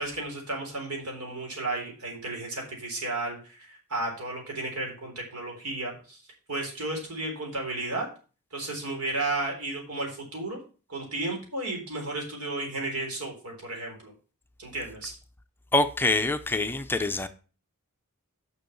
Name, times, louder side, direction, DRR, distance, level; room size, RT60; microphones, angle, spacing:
voice 1, 0.0-6.2 6.5-8.1 8.5-10.6 10.9-14.1 14.6-15.1, right 2 dB, 90° right, 3.7 m, -33 dB
voice 2, 15.7-17.3, left 2 dB, 10° left, 0.5 m, -25 dB
6.6 x 6.1 x 7.0 m
head